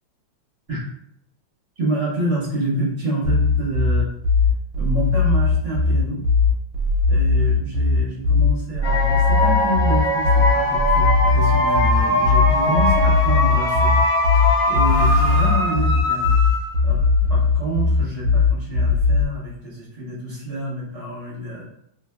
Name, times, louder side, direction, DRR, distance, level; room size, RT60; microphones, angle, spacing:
voice 1, 1.8-4.1 4.8-6.2 7.1-13.9 14.7-16.3 16.8-17.0 17.3-21.7, right 1 dB, 40° right, -7 dB, 1.0 m, -27 dB
sound 1, 3.2-19.2, left 4 dB, 75° right, 1.3 m, -18 dB
sound 2, 8.8-16.9, left 1 dB, 55° left, 0.5 m, -21 dB
3.1 x 2.6 x 2.2 m, 0.75 s
omnidirectional pair, 2.3 m